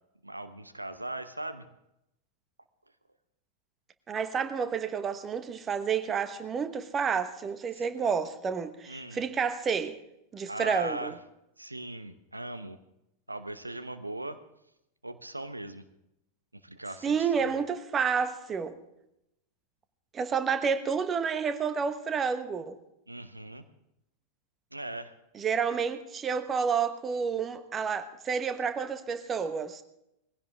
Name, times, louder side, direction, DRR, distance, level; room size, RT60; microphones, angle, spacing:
voice 1, 0.2-1.6 7.7-7.8 8.9-9.2 10.5-11.2 11.6-12.8 13.3-14.4 15.0-15.8 16.5-17.6 23.1-23.6 24.7-25.1, right 1 dB, 85° right, 0.9 m, -39 dB
voice 2, 4.1-10.0 10.3-11.1 17.0-18.8 20.1-22.8 25.3-29.8, right 6 dB, 20° right, 1.2 m, -30 dB
20.0 x 16.0 x 3.6 m
figure-of-eight pair, 90°, 0 cm